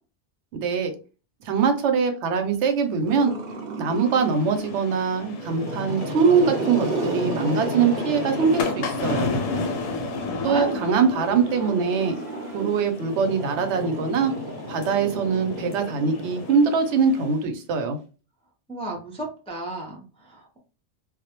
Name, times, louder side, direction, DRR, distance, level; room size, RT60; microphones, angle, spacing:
voice 1, 1.5-3.3 3.8-9.3 10.4-12.2 12.5-14.3 14.7-18.0, right 5 dB, 80° right, 6 dB, 0.9 m, -22 dB
Growling, 3.1-4.8 5.4-9.5 10.5-17.0, right 3 dB, 55° right, 0.5 m, -34 dB
sound 1, 3.9-17.4, left 3 dB, 85° left, 0.9 m, -33 dB
voice 2, 10.2-10.8 18.7-20.6, right 2 dB, 10° left, -1 dB, 0.3 m, -33 dB
2.3 x 2.1 x 2.8 m, 0.35 s
omnidirectional pair, 1.2 m